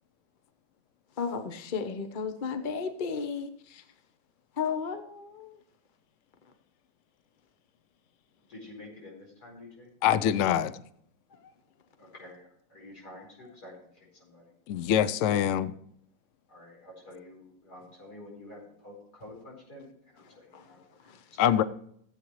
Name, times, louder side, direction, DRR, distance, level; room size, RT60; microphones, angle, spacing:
voice 1, 1.2-3.8 4.6-5.6 11.3-11.5 13.0-13.5 20.2-20.7 21.0-21.2, left 5 dB, 40° left, 7 dB, 0.7 m, -35 dB
voice 2, 8.5-9.9 12.0-12.4 12.7-13.7 14.2-14.4 16.5-19.9 20.1-20.8 21.4-21.5, left 1 dB, 55° left, -3 dB, 5.3 m, -48 dB
voice 3, 10.0-10.7 14.7-15.7 21.4-21.6, left 10 dB, 85° left, 15 dB, 0.6 m, -24 dB
15.5 x 8.4 x 3.1 m, 0.67 s
omnidirectional pair, 2.0 m